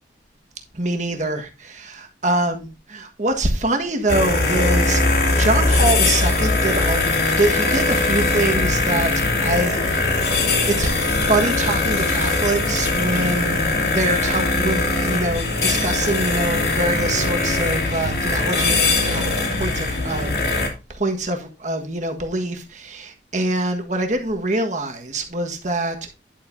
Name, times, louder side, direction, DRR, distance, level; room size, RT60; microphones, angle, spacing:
voice 1, 0.7-5.0 5.4-10.3 10.7-20.6 20.9-26.1, right 2 dB, 40° right, 1.5 m, -25 dB
sound 1, 4.1-20.7, left 3 dB, 60° left, 2.4 m, -20 dB
10.5 x 7.3 x 2.7 m
head